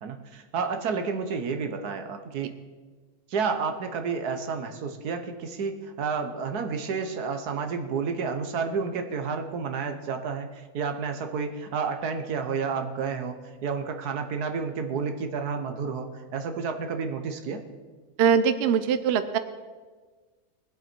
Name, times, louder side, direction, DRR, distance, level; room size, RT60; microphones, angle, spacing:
voice 1, 0.0-2.5 3.3-17.6, right 5 dB, 90° right, 6 dB, 1.6 m, -30 dB
voice 2, 18.2-19.4, right 7 dB, 55° right, 11 dB, 0.8 m, -22 dB
21.0 x 7.8 x 4.5 m, 1.4 s
omnidirectional pair, 1.6 m